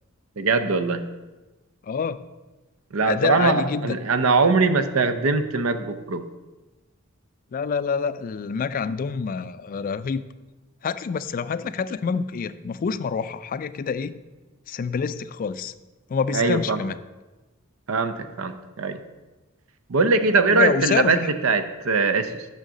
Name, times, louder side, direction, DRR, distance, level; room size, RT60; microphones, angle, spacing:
voice 1, 0.4-1.0 2.9-6.2 16.3-16.8 17.9-19.0 19.9-22.4, right 4 dB, 80° right, 10 dB, 0.6 m, -21 dB
voice 2, 1.8-2.2 3.1-4.0 7.5-10.2 10.8-14.2 14.7-15.7 16.1-17.0 20.5-21.3, left 5 dB, 40° left, 14 dB, 0.3 m, -27 dB
6.4 x 5.7 x 6.2 m, 1.1 s
head